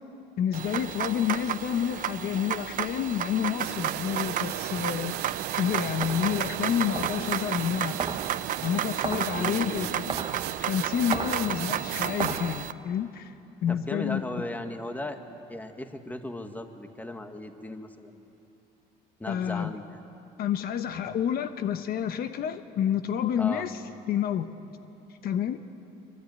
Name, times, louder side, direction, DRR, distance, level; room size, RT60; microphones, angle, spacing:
voice 1, 0.4-5.1 5.6-8.2 8.6-10.0 10.6-13.3 13.6-14.4 19.3-19.8 20.4-23.8 24.1-24.5 25.2-25.6, left 9 dB, 65° left, 9 dB, 1.1 m, -29 dB
sound 1, 0.5-12.7, right 10 dB, 50° right, 0.8 m, -33 dB
sound 2, 3.6-12.5, right 15 dB, 85° right, 0.7 m, -36 dB
sound 3, 6.0-12.7, right 5 dB, 30° right, 1.2 m, -37 dB
voice 2, 9.4-9.9 13.7-15.2 15.5-18.3 19.2-20.0 23.4-23.7, left 1 dB, 10° left, 6 dB, 1.8 m, -37 dB
24.5 x 23.5 x 9.5 m, 2.9 s
cardioid pair, 110°, 17 cm